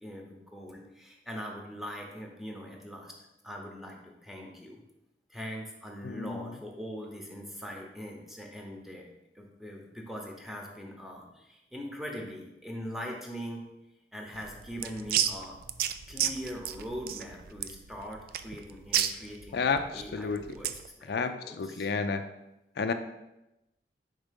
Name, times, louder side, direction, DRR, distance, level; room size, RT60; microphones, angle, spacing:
voice 1, 0.0-3.1 3.4-4.8 5.3-9.0 9.3-13.7 14.1-21.9, equal, ahead, 0 dB, 0.9 m, -42 dB
voice 2, 6.0-6.4 19.5-20.4 21.1-22.2 22.8-22.9, left 5 dB, 60° left, 8 dB, 0.4 m, -30 dB
sound 1, 14.3-20.9, right 10 dB, 55° right, 0.3 m, -32 dB
5.0 x 3.6 x 5.2 m, 0.93 s
head